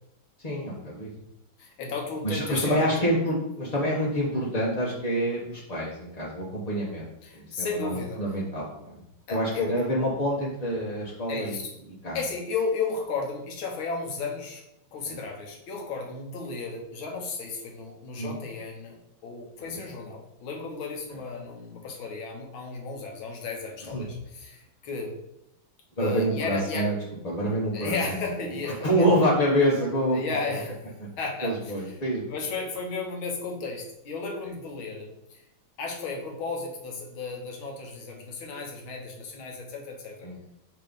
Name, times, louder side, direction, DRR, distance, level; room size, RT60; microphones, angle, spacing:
voice 1, 0.4-1.1 2.2-7.1 7.3-9.0 9.3-11.6 12.0-12.2 15.0-15.2 18.2-18.4 19.6-19.8 23.9-24.0 26.0-26.9 27.2-28.5 28.8-30.2 31.4-32.3 40.2-40.3, equal, 30° left, -6 dB, 0.8 m, -27 dB
voice 2, 1.6-2.9 7.2-8.2 9.3-9.9 11.3-11.7 12.1-14.6 14.9-25.1 26.0-26.9 27.7-29.3 30.1-31.7 32.3-35.4 35.8-40.3, left 4 dB, 85° left, 0 dB, 1.9 m, -34 dB
6.6 x 3.0 x 5.2 m, 0.82 s
omnidirectional pair, 2.2 m